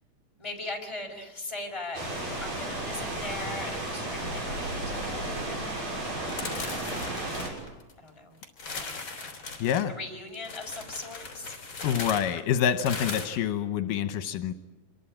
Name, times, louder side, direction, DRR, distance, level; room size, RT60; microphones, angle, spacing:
voice 1, 0.4-2.0 2.4-5.6 6.7-7.2 8.0-8.4 8.7-9.1 9.9-11.5, left 2 dB, 10° left, 1 dB, 4.6 m, -40 dB
sound 1, 1.9-7.5, right 1 dB, 55° right, 7.7 m, -33 dB
sound 2, 6.3-8.1 8.4-9.8 10.4-13.3, left 4 dB, 35° left, 4.0 m, -38 dB
voice 2, 9.6-9.9 11.8-14.5, left 9 dB, 80° left, 9 dB, 2.6 m, -27 dB
26.5 x 22.5 x 8.8 m, 1.1 s
omnidirectional pair, 3.8 m